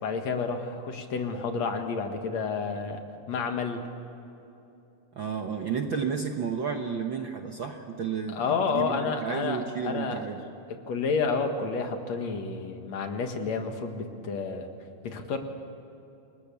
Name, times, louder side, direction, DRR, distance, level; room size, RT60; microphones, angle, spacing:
voice 1, 0.0-3.0 3.3-3.8 8.3-10.2 10.7-14.7 15.0-15.4, left 5 dB, 65° left, 5 dB, 2.8 m, -30 dB
voice 2, 5.1-8.4 8.7-10.4, right 6 dB, 55° right, 4 dB, 1.4 m, -32 dB
29.0 x 20.0 x 7.0 m, 2.9 s
omnidirectional pair, 3.5 m